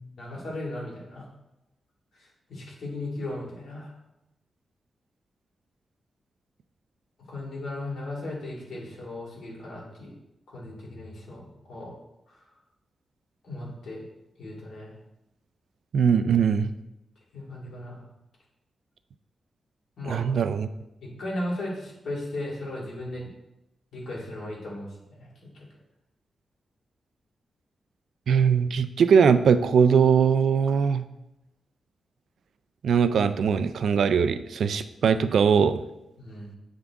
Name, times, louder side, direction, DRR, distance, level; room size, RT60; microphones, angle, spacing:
voice 1, 0.2-1.3 2.1-3.9 7.3-10.1 10.5-11.9 12.3-12.6 13.4-14.0 14.4-14.9 17.3-18.0 20.0-20.3 21.0-23.3 23.9-25.3 25.5-25.7 36.2-36.5, left 1 dB, 85° left, -4 dB, 2.1 m, -36 dB
voice 2, 15.9-16.7 20.1-20.7 28.3-31.0 32.8-35.8, right 6 dB, 70° right, 11 dB, 0.3 m, -21 dB
7.9 x 3.7 x 3.5 m, 0.89 s
wide cardioid pair, 180°, 0 cm